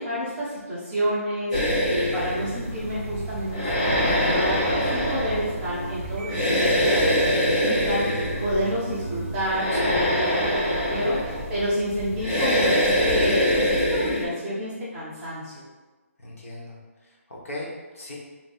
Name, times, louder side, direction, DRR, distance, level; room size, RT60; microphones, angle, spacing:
voice 1, 0.0-15.6, equal, 10° right, -11 dB, 0.7 m, -29 dB
sound 1, 1.5-14.2, equal, 25° left, 0.7 m, -24 dB
sound 2, 1.6-9.5, right 3 dB, 50° right, 0.4 m, -37 dB
voice 2, 16.2-18.2, left 1 dB, 65° left, -3 dB, 1.2 m, -38 dB
3.5 x 2.4 x 4.2 m, 1.3 s
hypercardioid pair, 175°, 8 cm